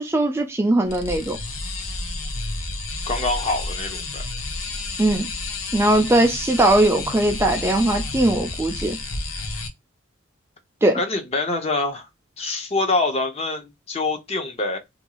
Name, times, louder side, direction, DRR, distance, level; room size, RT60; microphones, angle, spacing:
voice 1, 0.0-1.4 5.0-5.3 5.7-9.0 10.8-11.0, right 1 dB, 15° right, 0.3 m, -19 dB
sound 1, 0.8-9.7, left 3 dB, 85° left, 0.7 m, -31 dB
voice 2, 3.1-4.2 10.9-12.1 12.4-14.8, left 2 dB, 30° left, 0.6 m, -25 dB
2.6 x 2.3 x 2.9 m
head